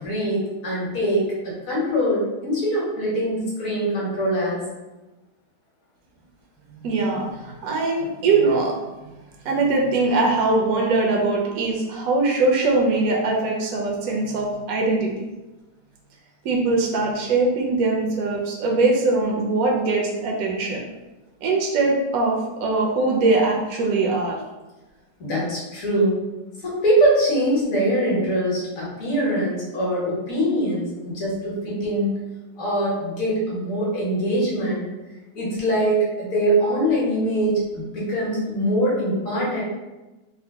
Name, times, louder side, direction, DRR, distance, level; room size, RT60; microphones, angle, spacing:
voice 1, 0.0-4.6 25.2-26.2 26.6-32.1 32.6-34.9 35.3-39.6, right 1 dB, 55° left, -5 dB, 1.5 m, -23 dB
voice 2, 6.7-8.8 9.4-15.1 16.4-20.8 21.4-24.4, right 3 dB, 70° right, -1 dB, 1.0 m, -21 dB
3.7 x 2.2 x 3.4 m, 1.1 s
omnidirectional pair, 1.8 m